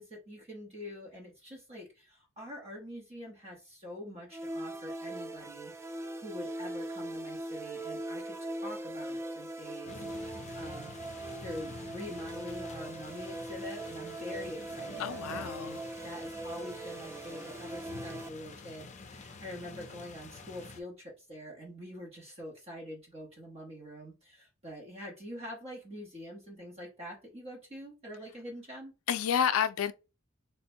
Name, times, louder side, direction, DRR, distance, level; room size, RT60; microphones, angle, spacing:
voice 1, 0.0-15.8 16.0-28.9, equal, 30° right, 0.9 m, -45 dB
sound 1, 4.3-18.3, right 1 dB, 15° right, 0.3 m, -40 dB
sound 2, 9.9-20.8, left 3 dB, 35° left, 0.5 m, -48 dB
voice 2, 15.0-15.8 29.1-29.9, left 8 dB, 90° left, 0.4 m, -29 dB
3.3 x 2.2 x 4.3 m
head